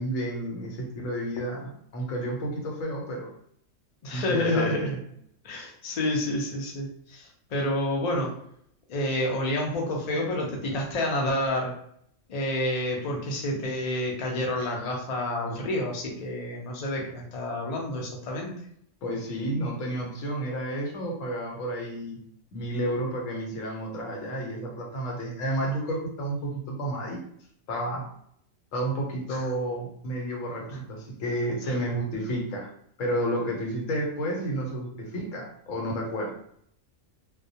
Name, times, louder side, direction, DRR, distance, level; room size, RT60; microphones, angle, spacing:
voice 1, 0.0-3.3 4.1-5.0 19.0-22.2 22.5-27.2 27.7-28.0 28.7-32.7 33.0-36.3, right 1 dB, 90° left, -1 dB, 1.1 m, -31 dB
voice 2, 4.0-4.9 5.4-8.3 8.9-11.7 12.3-18.5 29.3-29.4 30.7-30.8 31.6-31.7, left 1 dB, 50° left, -1 dB, 0.5 m, -29 dB
2.3 x 2.1 x 2.6 m, 0.68 s
omnidirectional pair, 1.3 m